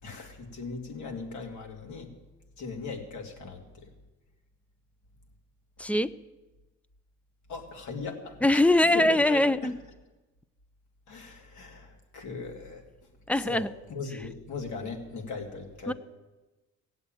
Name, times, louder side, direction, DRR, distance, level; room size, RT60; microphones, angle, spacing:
voice 1, 0.0-2.1 2.6-3.9 7.5-9.7 11.1-12.9 13.3-15.9, left 4 dB, 70° left, 2 dB, 2.7 m, -38 dB
voice 2, 5.8-6.1 8.4-9.7 13.3-13.7 15.9-16.0, left 1 dB, 5° left, 16 dB, 0.4 m, -22 dB
16.0 x 7.9 x 8.9 m, 1.1 s
cardioid pair, 90°, 30 cm